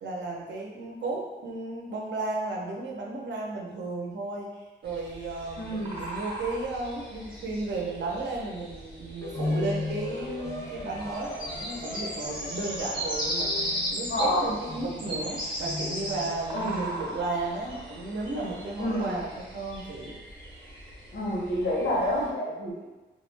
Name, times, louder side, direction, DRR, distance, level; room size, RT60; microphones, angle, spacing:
voice 1, 0.0-4.5 4.8-20.2, right 2 dB, 75° right, -2 dB, 0.6 m, -34 dB
sound 1, 4.8-22.3, equal, 25° right, 0.7 m, -37 dB
voice 2, 5.6-6.0 14.1-14.5 16.5-17.0 18.8-19.2 21.1-22.8, left 1 dB, 80° left, -4 dB, 0.8 m, -28 dB
sound 2, 9.2-19.4, left 2 dB, 15° left, 0.5 m, -38 dB
2.2 x 2.0 x 3.2 m, 1.2 s
wide cardioid pair, 170°, 19 cm